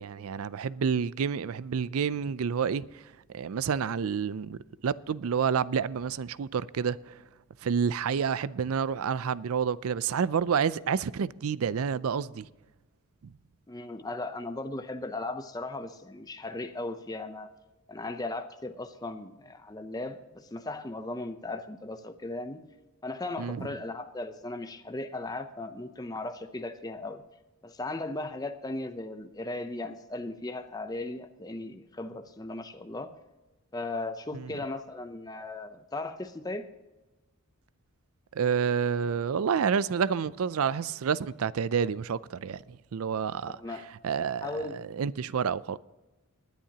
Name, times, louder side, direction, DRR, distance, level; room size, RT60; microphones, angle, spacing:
voice 1, 0.0-2.9 3.3-7.2 7.6-12.5 23.4-23.7 34.3-34.5 38.3-43.6 44.0-45.8, right 6 dB, 75° right, 0.4 m, -29 dB
voice 2, 13.7-17.5 17.9-22.7 23.0-27.2 27.6-33.2 33.7-36.7 43.5-43.9 44.2-44.9, left 2 dB, 15° left, 0.6 m, -37 dB
19.5 x 10.0 x 2.9 m
head